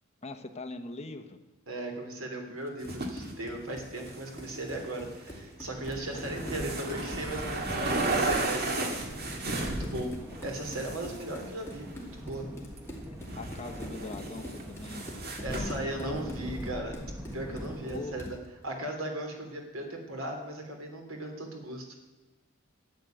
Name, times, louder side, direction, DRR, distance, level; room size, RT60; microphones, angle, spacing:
voice 1, 0.2-1.4 11.1-11.3 13.0-16.2 17.8-18.3, left 2 dB, 30° left, 6 dB, 1.1 m, -42 dB
voice 2, 1.7-10.1 10.4-12.5 14.9-17.0 17.3-18.4 18.6-21.9, right 1 dB, 75° right, 3 dB, 3.2 m, -37 dB
Run, 2.6-18.5, left 1 dB, 10° left, 2.5 m, -46 dB
sound 1, 2.8-3.3 3.9-5.4 5.9-10.1 10.3-11.9 12.8-12.9 13.2-15.8, right 2 dB, 50° right, 2.0 m, -34 dB
sound 2, 5.6-18.3, equal, 10° right, 1.1 m, -42 dB
12.5 x 8.4 x 9.1 m, 1.1 s
head